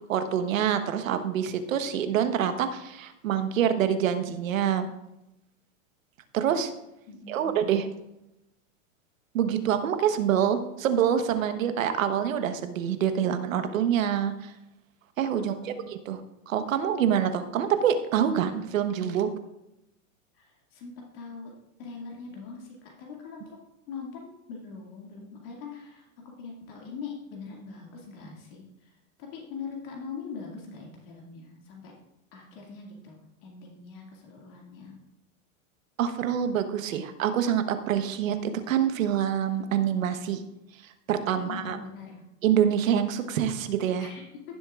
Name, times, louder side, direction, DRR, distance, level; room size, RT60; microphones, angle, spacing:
voice 1, 0.1-4.9 6.3-6.7 7.3-7.9 9.3-14.5 15.2-16.2 16.5-19.3 36.0-40.4 41.1-41.8 42.4-44.1, right 9 dB, 85° right, 9 dB, 1.2 m, -26 dB
voice 2, 7.1-7.6 15.4-15.9 20.3-21.5 21.8-23.6 23.9-31.9 32.3-35.0 41.3-42.2 44.0-44.5, left 5 dB, 45° left, -1 dB, 2.2 m, -42 dB
16.5 x 7.3 x 2.4 m, 0.88 s
supercardioid pair, 160°, 39 cm